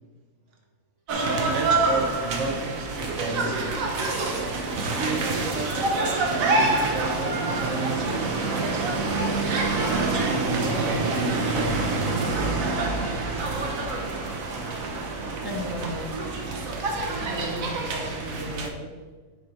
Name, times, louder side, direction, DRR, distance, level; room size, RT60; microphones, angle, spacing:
voice 1, 1.1-3.9 4.7-5.9 6.5-8.9 9.9-12.1, right 2 dB, 65° right, 2 dB, 1.4 m, -32 dB
sound 1, 1.1-18.7, right 3 dB, 80° right, 1.3 m, -26 dB
voice 2, 15.4-16.1 17.2-18.9, equal, 20° left, -5 dB, 1.4 m, -35 dB
9.8 x 3.7 x 4.2 m, 1.3 s
omnidirectional pair, 1.4 m